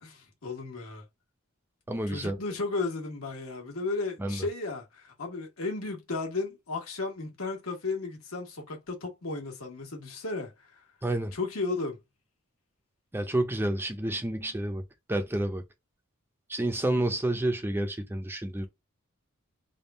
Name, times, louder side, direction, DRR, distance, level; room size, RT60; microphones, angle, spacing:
voice 1, 0.0-1.0 2.1-10.8 11.3-12.0, left 3 dB, 75° left, 1.4 m, -34 dB
voice 2, 1.9-2.4 4.2-4.4 11.0-11.3 13.1-14.8 15.1-15.6 16.5-18.7, right 1 dB, 10° right, 0.5 m, -29 dB
3.5 x 2.3 x 4.0 m
head